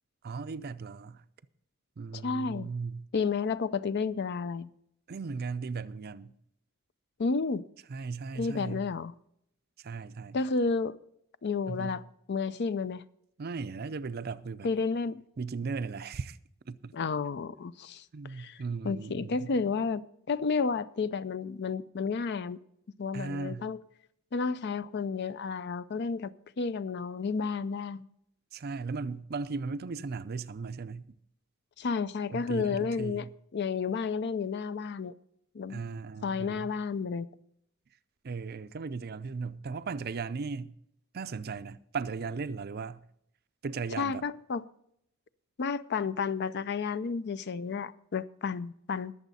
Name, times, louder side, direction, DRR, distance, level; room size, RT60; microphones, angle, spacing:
voice 1, 0.2-1.2 2.0-3.0 5.1-6.3 7.9-8.9 9.8-10.4 11.7-12.0 13.4-14.7 15.4-16.4 16.7-16.9 18.1-19.5 23.1-23.7 28.5-31.0 32.3-33.3 35.7-36.7 38.2-40.7 41.1-43.0 43.6-44.2, right 4 dB, 45° right, 0.5 m, -37 dB
voice 2, 2.1-2.7 3.1-4.7 7.2-7.6 8.4-9.1 10.3-11.0 11.4-13.0 14.6-15.2 16.9-18.6 18.8-20.0 20.3-22.6 23.0-23.8 24.3-26.3 26.6-28.1 31.8-33.3 33.5-35.1 35.5-35.8 36.2-37.3 44.0-44.6 45.6-49.1, left 5 dB, 50° left, 0.5 m, -31 dB
20.5 x 7.1 x 4.1 m
head